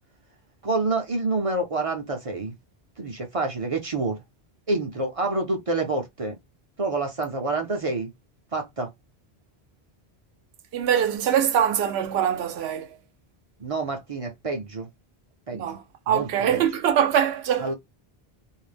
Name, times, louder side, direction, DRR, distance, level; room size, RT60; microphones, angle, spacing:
voice 1, 0.6-2.5 3.0-4.2 4.7-6.3 6.8-8.1 8.5-8.9 13.6-14.9 15.5-15.8 16.1-16.6 17.6-17.7, right 3 dB, 45° right, 0.5 m, -27 dB
voice 2, 10.7-12.9 15.5-17.7, right 9 dB, 80° right, 0.8 m, -23 dB
2.5 x 2.1 x 3.2 m
omnidirectional pair, 1.1 m